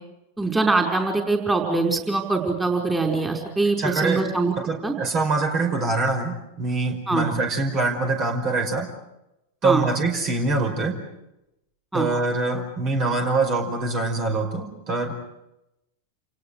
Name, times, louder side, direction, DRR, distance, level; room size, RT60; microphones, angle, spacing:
voice 1, 0.4-4.5 4.8-4.9 7.1-7.3 9.6-9.8 11.9-12.1, right 3 dB, 10° right, 2 dB, 5.3 m, -23 dB
voice 2, 3.8-4.3 4.6-8.9 9.6-11.0 11.9-15.2, right 3 dB, 35° right, 4 dB, 5.1 m, -24 dB
30.0 x 29.5 x 5.0 m, 0.88 s
figure-of-eight pair, 90°, 0 cm